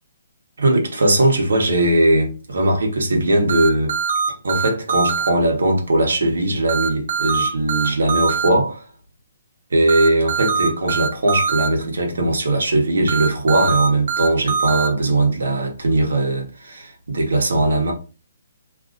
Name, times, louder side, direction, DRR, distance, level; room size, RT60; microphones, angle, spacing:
voice 1, 0.6-3.9 4.4-8.9 9.7-17.9, right 1 dB, 85° right, 1.1 m, -19 dB
sound 1, 3.5-5.3 6.7-8.5 9.9-11.7 13.1-14.9, right 5 dB, 55° right, 0.5 m, -22 dB
2.7 x 2.5 x 3.8 m
hypercardioid pair, 175°, 0 cm